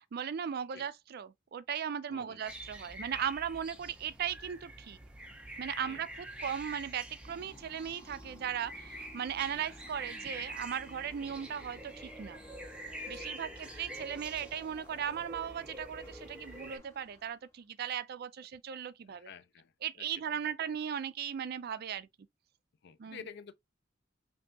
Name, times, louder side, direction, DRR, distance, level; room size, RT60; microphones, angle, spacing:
voice 1, 0.0-5.0 5.6-6.1 6.4-12.4 13.1-19.3 19.8-22.1 23.0-23.2, right 8 dB, 50° right, 0.4 m, -37 dB
voice 2, 2.1-2.4 5.8-6.0 13.1-13.5 17.9-18.0 19.0-20.4 22.8-23.5, left 6 dB, 55° left, 0.4 m, -51 dB
sound 1, 2.4-16.8, right 1 dB, 5° right, 0.6 m, -46 dB
sound 2, 7.3-17.6, left 1 dB, 15° left, 1.4 m, -56 dB
5.4 x 2.6 x 2.2 m
head